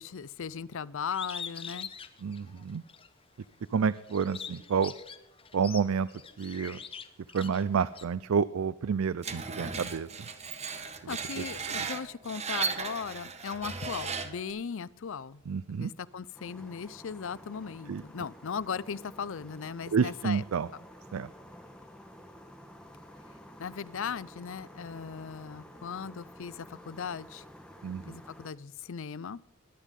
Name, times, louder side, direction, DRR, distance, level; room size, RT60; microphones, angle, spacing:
voice 1, 0.0-1.9 11.1-15.4 15.7-20.4 23.6-27.4 28.1-29.4, left 6 dB, 65° left, 18 dB, 0.5 m, -38 dB
Bird, 1.1-3.1 3.5-8.0, left 6 dB, 25° left, 1.0 m, -43 dB
voice 2, 2.2-2.8 3.7-4.9 5.5-6.1 6.4-6.8 7.3-10.3 11.0-11.9 15.5-15.9 17.9-18.0 19.9-20.7 21.1-21.3 27.8-28.2, right 6 dB, 75° right, 17 dB, 0.4 m, -29 dB
Screech, 9.2-14.5, right 5 dB, 30° right, 1.3 m, -36 dB
sound 1, 16.3-28.5, equal, 5° left, 1.5 m, -51 dB
22.0 x 8.3 x 3.7 m, 0.91 s
head